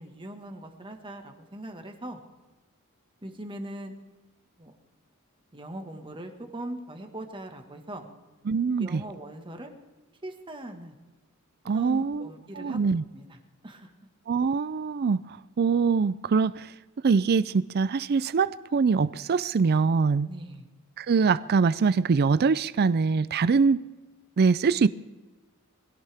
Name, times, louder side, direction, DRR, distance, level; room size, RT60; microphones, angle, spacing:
voice 1, 0.0-2.2 3.2-3.9 4.6-4.7 5.5-8.0 8.8-9.7 10.2-10.9 11.7-12.8 13.1-13.4 13.6-13.9 20.2-20.7, right 1 dB, 25° right, 1.6 m, -40 dB
voice 2, 8.5-9.0 11.7-12.3 12.6-13.0 14.3-16.7 17.0-20.3 21.0-23.8 24.4-24.9, right 5 dB, 45° right, 0.4 m, -23 dB
21.0 x 17.0 x 3.5 m
head